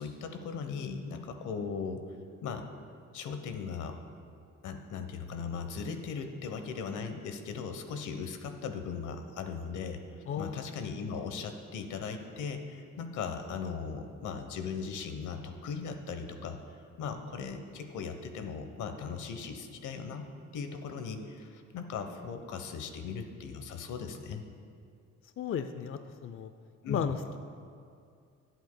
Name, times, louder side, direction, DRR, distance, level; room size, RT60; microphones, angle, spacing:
voice 1, 0.0-2.2 2.4-2.7 3.1-4.0 4.6-20.3 20.5-24.5 26.8-27.1, left 5 dB, 80° left, 7 dB, 1.0 m, -38 dB
voice 2, 10.3-10.7 25.4-26.5 26.9-27.4, left 7 dB, 45° left, 9 dB, 0.5 m, -35 dB
20.0 x 8.1 x 2.2 m, 2.3 s
cardioid pair, 90°, 30 cm